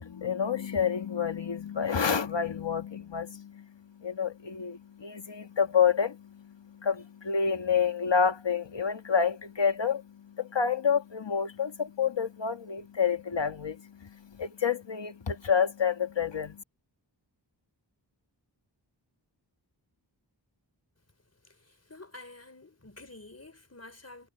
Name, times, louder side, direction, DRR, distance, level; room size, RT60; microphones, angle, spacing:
voice 1, 0.0-16.6, left 6 dB, 75° left, 1.5 m, -29 dB
voice 2, 21.4-24.3, left 2 dB, 35° left, 3.7 m, -49 dB
wide cardioid pair, 65°, 44 cm